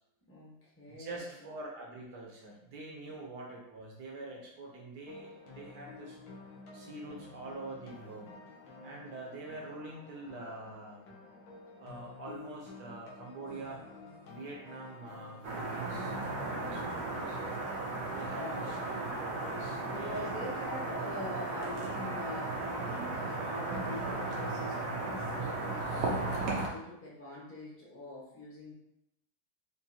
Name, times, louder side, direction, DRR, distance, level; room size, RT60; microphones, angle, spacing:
voice 1, 0.3-1.5 3.0-3.1 18.3-18.7 19.9-26.4 26.7-28.7, left 1 dB, 10° left, -6 dB, 0.7 m, -44 dB
voice 2, 0.9-6.2 6.7-8.3 8.8-11.2 11.8-13.8 14.3-17.4 18.1-20.3, right 2 dB, 65° right, -1 dB, 1.2 m, -45 dB
sound 1, 5.1-17.9, left 3 dB, 80° left, 1.6 m, -52 dB
sound 2, 15.4-26.7, right 2 dB, 85° right, 1.6 m, -35 dB
5.2 x 2.6 x 2.8 m, 0.80 s
omnidirectional pair, 2.2 m